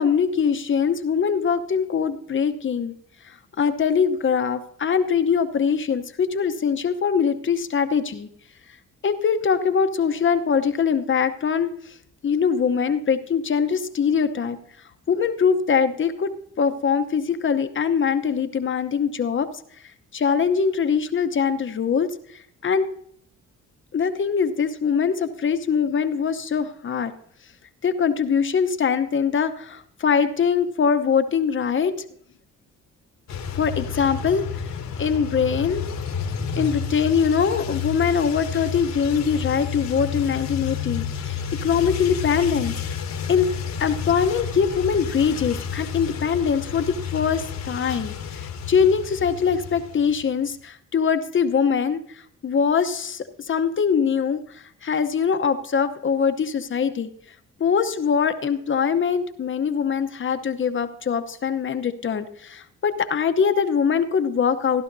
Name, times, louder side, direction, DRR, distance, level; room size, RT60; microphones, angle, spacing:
voice 1, 0.0-2.9 3.2-8.3 9.0-12.0 12.2-14.6 15.1-16.3 16.6-19.5 20.1-22.9 23.9-27.1 27.8-32.0 33.5-34.4 35.0-35.8 36.6-43.0 43.3-43.5 43.8-57.1 57.6-64.8, left 6 dB, 40° left, 9 dB, 0.9 m, -22 dB
sound 1, 33.3-50.3, left 7 dB, 65° left, 1.3 m, -31 dB
16.0 x 11.5 x 2.7 m, 0.65 s
cardioid pair, 90°, 30 cm